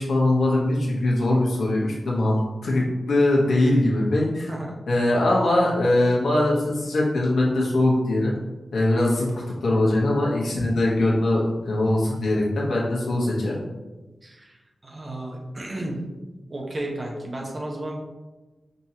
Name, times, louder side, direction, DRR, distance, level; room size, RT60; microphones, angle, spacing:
voice 1, 0.0-4.5 4.9-8.3 8.7-13.6, left 1 dB, 85° left, -4 dB, 1.0 m, -22 dB
voice 2, 4.5-4.8 14.2-16.1 16.5-18.0, right 1 dB, 30° right, -1 dB, 0.8 m, -33 dB
5.3 x 2.9 x 2.8 m, 1.2 s
wide cardioid pair, 165°, 0 cm